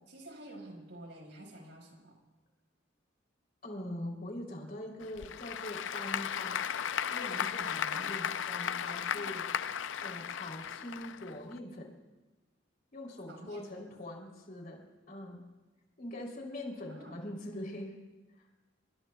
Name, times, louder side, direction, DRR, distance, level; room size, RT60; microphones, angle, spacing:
voice 1, 0.1-2.2 7.9-8.1 13.3-13.8 16.9-17.2, right 1 dB, 70° right, 0 dB, 4.9 m, -49 dB
voice 2, 3.6-6.6 7.1-9.7 10.0-11.9 12.9-15.4 16.0-18.0, left 1 dB, 50° left, 0 dB, 3.2 m, -43 dB
Applause / Crowd, 5.0-11.6, left 8 dB, 75° left, 0.5 m, -36 dB
25.0 x 23.0 x 2.3 m, 1.2 s
head